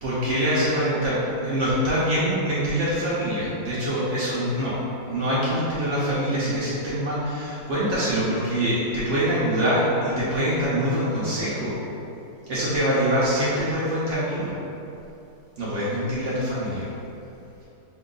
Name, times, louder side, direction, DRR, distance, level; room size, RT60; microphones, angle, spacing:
voice 1, 0.0-4.8 5.0-11.8 12.5-14.5 15.6-16.9, equal, 65° right, -9 dB, 0.7 m, -24 dB
5.7 x 2.3 x 3.8 m, 2.9 s
omnidirectional pair, 2.3 m